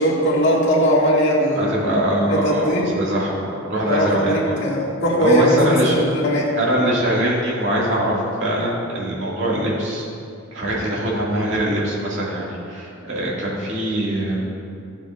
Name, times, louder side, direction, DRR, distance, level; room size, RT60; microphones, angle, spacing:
voice 1, 0.0-1.7 2.3-2.9 3.8-6.5, equal, 60° left, -5 dB, 2.2 m, -19 dB
voice 2, 1.6-4.6 5.2-6.0 6.6-10.0 10.5-14.4, right 1 dB, 65° right, -6 dB, 2.5 m, -22 dB
15.5 x 7.2 x 2.7 m, 2.5 s
head